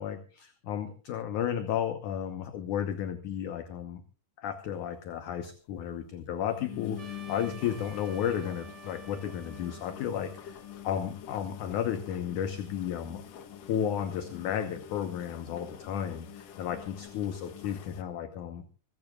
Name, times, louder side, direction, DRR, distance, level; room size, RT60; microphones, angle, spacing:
voice 1, 0.0-4.0 4.4-13.2 13.7-18.6, left 9 dB, 65° left, 8 dB, 2.1 m, -33 dB
sound 1, 4.7-4.8 5.1-5.2 5.4-5.5 5.8-6.0 6.5-18.0, left 10 dB, 90° left, 1.4 m, -46 dB
Trumpet, 7.0-11.4, right 6 dB, 80° right, 0.9 m, -51 dB
26.0 x 14.0 x 2.4 m, 0.36 s
omnidirectional pair, 4.6 m